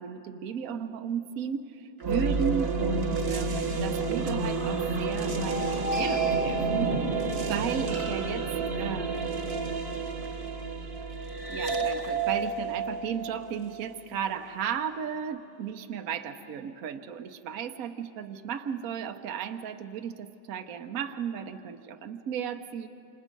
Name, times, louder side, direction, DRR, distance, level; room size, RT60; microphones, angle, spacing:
voice 1, 0.0-8.4 8.8-9.6 11.5-22.9, right 7 dB, 65° right, 6 dB, 0.8 m, -35 dB
sound 1, 2.0-14.2, right 4 dB, 35° right, 1.1 m, -29 dB
28.0 x 27.0 x 5.2 m, 2.7 s
omnidirectional pair, 2.4 m